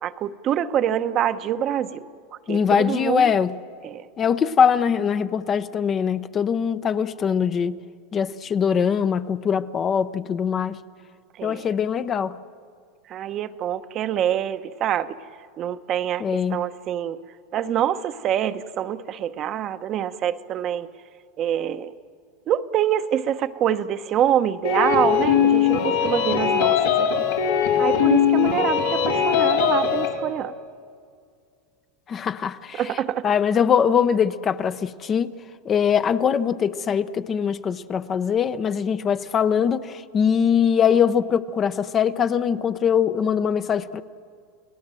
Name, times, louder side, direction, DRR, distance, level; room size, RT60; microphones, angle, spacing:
voice 1, 0.0-2.1 2.5-3.3 3.8-4.1 11.4-11.7 13.1-15.2 15.6-16.2 16.5-17.2 17.5-20.9 21.4-21.9 22.5-27.1 27.8-30.5 32.8-33.3, right 10 dB, 40° right, 0.9 m, -25 dB
voice 2, 2.5-3.5 4.2-7.8 8.1-10.8 11.4-12.4 16.2-16.6 32.1-32.8 33.2-35.3 35.6-44.0, left 7 dB, 30° left, 0.8 m, -22 dB
sound 1, 24.6-30.1, left 8 dB, 90° left, 3.9 m, -20 dB
30.0 x 18.5 x 7.6 m
supercardioid pair, 120°, 0 cm